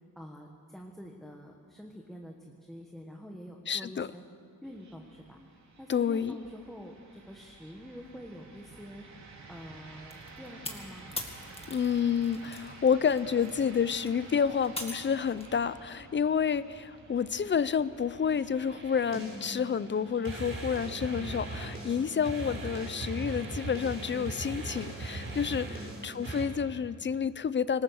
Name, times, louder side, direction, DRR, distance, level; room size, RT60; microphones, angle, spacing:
voice 1, 0.2-4.2 4.6-5.4 5.8-9.0 9.5-11.1 25.7-25.9, equal, ahead, 1 dB, 1.3 m, -46 dB
voice 2, 3.7-4.1 5.9-6.4 11.7-25.7 26.0-27.8, left 7 dB, 35° left, 16 dB, 0.5 m, -29 dB
sound 1, 4.6-23.6, right 3 dB, 50° right, 3.5 m, -52 dB
sound 2, 10.1-12.7 13.0-15.6, left 2 dB, 15° left, 2.0 m, -42 dB
sound 3, 18.1-26.4, right 2 dB, 35° right, 4.6 m, -39 dB
26.0 x 20.0 x 6.4 m, 2.5 s
wide cardioid pair, 170°, 35 cm